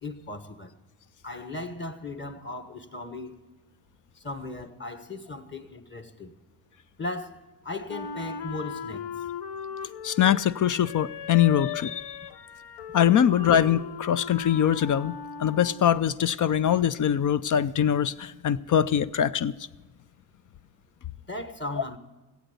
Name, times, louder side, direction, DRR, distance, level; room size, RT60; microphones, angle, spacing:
voice 1, 0.0-0.7 1.2-3.4 4.2-6.3 7.0-9.1 21.3-22.0, left 2 dB, 25° left, 1.3 m, -37 dB
Wind instrument woodwind instrument, 7.9-16.1, left 7 dB, 65° left, 0.9 m, -38 dB
voice 2, 10.0-12.2 12.9-19.5, left 9 dB, 45° left, 0.5 m, -23 dB
16.5 x 8.2 x 6.7 m
cardioid pair, 75°, 44 cm